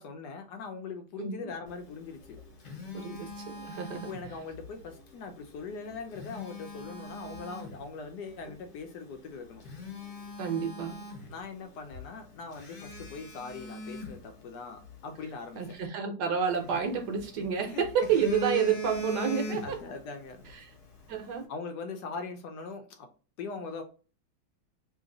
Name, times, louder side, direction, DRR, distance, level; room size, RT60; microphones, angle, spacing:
voice 1, 0.0-2.4 4.0-9.7 11.3-15.8 16.7-16.8 17.6-17.8 18.8-18.9 19.6-20.5 21.2-23.1 23.4-23.8, left 4 dB, 70° left, 5 dB, 1.0 m, -41 dB
Telephone, 2.1-4.7 5.9-7.8 8.4-8.6 9.2-9.3 9.6-11.7 11.9-12.1 12.6-14.9 16.5-17.5 17.8-20.0 20.3-20.5, left 1 dB, 50° left, 1.3 m, -39 dB
voice 2, 2.9-4.1 10.4-11.0 15.6-19.8 20.6-20.7 21.1-21.5, right 7 dB, 70° right, 4 dB, 1.2 m, -30 dB
3.2 x 2.5 x 3.7 m, 0.36 s
omnidirectional pair, 2.0 m